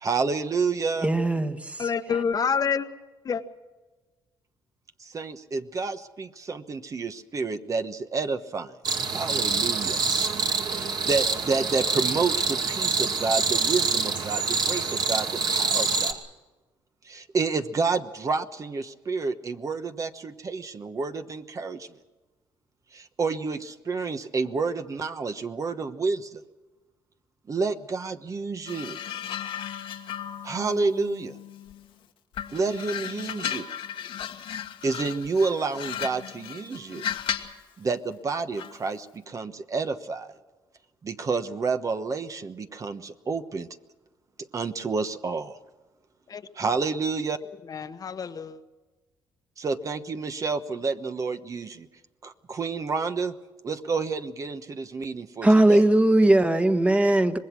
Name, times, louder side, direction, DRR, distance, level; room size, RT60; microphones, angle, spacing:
voice 1, 0.0-1.1 5.0-8.8 9.1-10.0 10.6-16.2 17.0-21.9 22.9-26.4 27.5-29.0 30.4-31.4 32.5-33.7 34.8-37.1 37.8-40.4 41.0-43.7 44.5-45.6 46.5-47.4 49.6-51.9 52.2-53.3 53.6-55.8, right 4 dB, 40° right, 1.2 m, -29 dB
voice 2, 1.0-1.9 55.4-57.4, right 1 dB, 15° right, 1.5 m, -19 dB
voice 3, 1.8-2.9 3.2-3.4 46.3-46.4 47.7-48.6, left 6 dB, 45° left, 1.2 m, -27 dB
sound 1, 8.8-16.1, right 4 dB, 55° right, 2.3 m, -26 dB
sound 2, 28.7-31.9 32.3-37.6 38.6-38.8, left 9 dB, 80° left, 1.6 m, -35 dB
25.0 x 20.5 x 6.2 m
cardioid pair, 95°, 9 cm